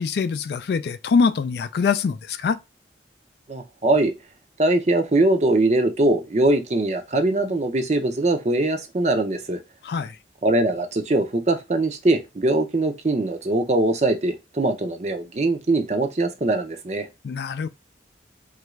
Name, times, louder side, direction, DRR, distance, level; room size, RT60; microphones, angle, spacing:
voice 1, 0.0-2.6 9.8-10.2 17.2-17.7, left 5 dB, 60° left, 0.3 m, -23 dB
voice 2, 3.5-4.1 4.6-9.6 10.4-17.1, right 2 dB, 40° right, 0.5 m, -22 dB
3.2 x 2.4 x 3.0 m
head